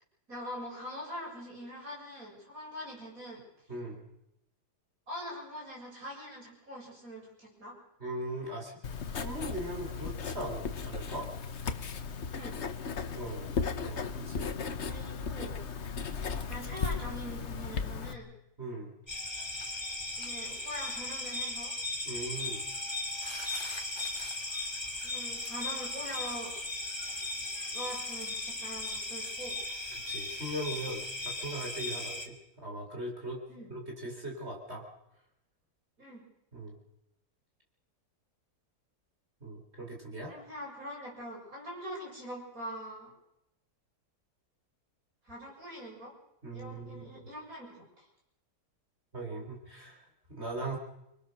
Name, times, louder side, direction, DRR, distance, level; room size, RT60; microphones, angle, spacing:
voice 1, 0.3-3.4 5.1-7.8 12.3-12.6 14.8-15.6 16.5-18.3 20.2-21.7 25.0-26.5 27.7-29.6 33.5-33.7 36.0-36.2 40.3-43.1 45.2-46.1 46.5-48.1, equal, 60° right, -2 dB, 7.8 m, -43 dB
voice 2, 3.7-4.1 8.0-11.3 13.1-14.5 18.6-18.9 22.0-22.6 29.9-33.4 33.7-34.8 36.5-36.8 39.4-40.4 46.4-47.1 49.1-50.8, right 1 dB, 40° right, 0 dB, 4.6 m, -40 dB
Writing, 8.8-18.1, left 5 dB, 45° left, 1.3 m, -36 dB
sound 1, 19.1-32.3, left 2 dB, 15° left, 2.3 m, -37 dB
26.5 x 20.5 x 6.6 m, 0.84 s
omnidirectional pair, 1.7 m